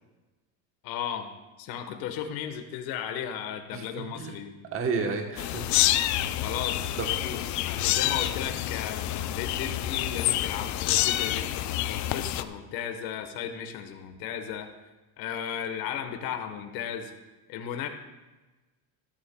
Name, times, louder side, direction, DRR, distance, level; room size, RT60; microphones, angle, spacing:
voice 1, 0.8-4.6 6.4-7.0 7.2-14.7 15.2-17.1 17.5-17.9, left 9 dB, 65° left, 7 dB, 1.3 m, -35 dB
voice 2, 3.7-4.4 4.7-5.8 7.0-7.1, right 4 dB, 35° right, 4 dB, 1.1 m, -31 dB
sound 1, 5.4-12.4, left 13 dB, 50° left, 0.5 m, -28 dB
14.5 x 11.5 x 2.3 m, 1.2 s
cardioid pair, 140°, 39 cm